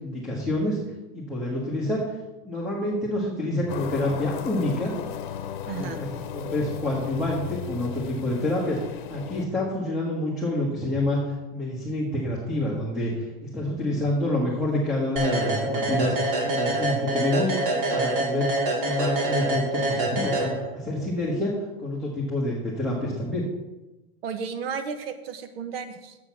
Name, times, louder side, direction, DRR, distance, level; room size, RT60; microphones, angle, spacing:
voice 1, 0.0-0.8 1.1-2.0 2.4-4.9 5.7-8.8 9.1-11.2 11.5-13.1 13.4-16.1 16.4-18.5 18.8-23.4, left 1 dB, ahead, -5 dB, 1.1 m, -27 dB
sound 1, 3.7-9.5, left 8 dB, 55° left, 0.9 m, -35 dB
voice 2, 5.7-6.0 24.2-26.2, right 6 dB, 75° right, 9 dB, 1.2 m, -33 dB
sound 2, 15.2-21.0, right 2 dB, 60° right, 2.4 m, -26 dB
7.4 x 6.3 x 6.0 m, 1.0 s
supercardioid pair, 175°, 30 cm